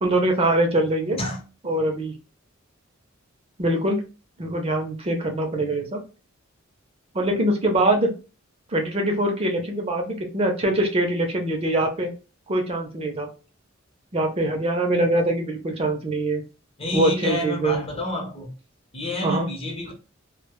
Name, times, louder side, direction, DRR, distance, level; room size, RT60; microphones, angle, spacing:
voice 1, 0.0-1.2 1.6-2.2 3.6-4.0 4.4-6.0 7.1-8.1 8.7-12.1 12.5-13.3 14.1-16.4 16.9-17.8 19.2-19.5, right 1 dB, 30° right, 0.5 m, -23 dB
voice 2, 16.8-18.5 18.9-19.9, left 1 dB, 30° left, 0.6 m, -29 dB
2.1 x 2.0 x 2.9 m
head